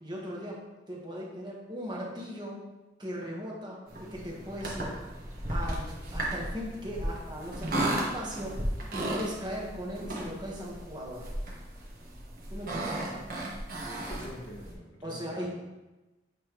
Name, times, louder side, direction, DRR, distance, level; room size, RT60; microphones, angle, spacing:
voice 1, 0.0-2.6 3.0-5.0 5.5-8.6 8.9-11.3 12.5-13.2 15.0-15.5, equal, 25° right, -3 dB, 1.4 m, -38 dB
sound 1, 3.9-14.7, right 1 dB, 50° right, 1.5 m, -35 dB
voice 2, 14.0-15.5, equal, 90° left, -2 dB, 1.7 m, -45 dB
8.2 x 5.2 x 3.1 m, 1.1 s
head